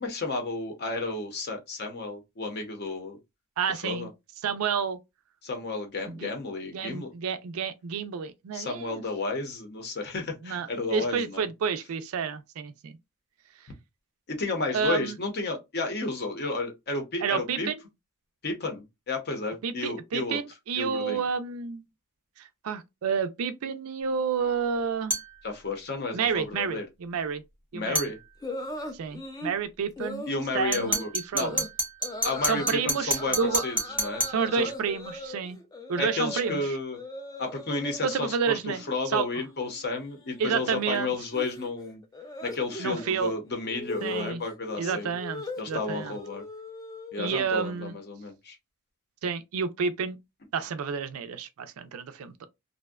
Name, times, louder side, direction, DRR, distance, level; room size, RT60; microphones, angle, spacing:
voice 1, 0.0-3.2 3.8-4.1 5.4-7.1 8.5-11.5 14.3-17.7 18.4-20.4 20.7-21.3 25.4-26.9 27.7-28.2 30.3-31.5 32.2-34.2 34.5-34.7 36.0-37.0 37.4-38.6 38.9-42.0 42.4-45.1 45.6-46.4 47.1-48.6, left 3 dB, 50° left, 0.7 m, -32 dB
voice 2, 3.6-4.1 4.4-5.0 6.1-6.3 6.7-9.0 10.4-13.0 14.7-15.2 17.2-17.8 19.6-21.8 22.4-25.1 26.1-27.4 27.7-28.1 28.9-30.3 30.5-31.6 32.4-33.6 34.3-35.6 35.9-36.7 38.0-39.3 40.4-41.1 42.8-43.3 44.0-44.4 44.8-46.2 47.2-48.0 49.2-50.2 50.5-52.5, right 6 dB, 75° right, 0.4 m, -30 dB
sound 1, 25.1-25.4 27.9-28.2 30.7-34.4, right 1 dB, 10° right, 0.7 m, -29 dB
sound 2, 28.4-29.6 30.0-30.3 30.8-31.1 31.4-31.7 32.0-32.8 33.2-36.6 36.9-38.2 38.5-39.0 39.2-47.4, left 2 dB, 15° left, 0.3 m, -39 dB
2.6 x 2.1 x 2.3 m
head